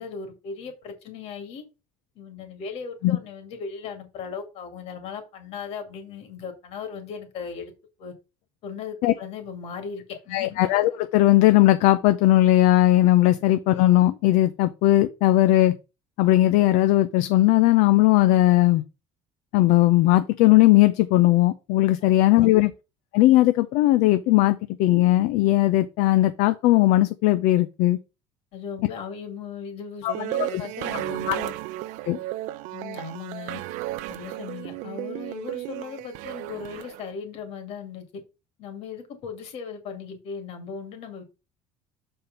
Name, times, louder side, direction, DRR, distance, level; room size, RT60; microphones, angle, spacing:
voice 1, 0.0-1.6 2.2-7.7 8.0-8.1 8.6-10.6 22.0-22.7 28.5-31.5 32.7-33.6 34.1-38.2 38.6-41.2, left 6 dB, 50° left, 2.1 m, -37 dB
voice 2, 10.3-15.7 16.2-18.8 19.5-22.7 23.1-28.0 30.0-30.1 30.5-30.6 31.3-31.4 32.1-32.2, left 16 dB, 65° left, 0.5 m, -18 dB
sound 1, 30.1-37.1, right 16 dB, 65° right, 0.5 m, -33 dB
6.7 x 4.4 x 5.2 m
cardioid pair, 180°, 14 cm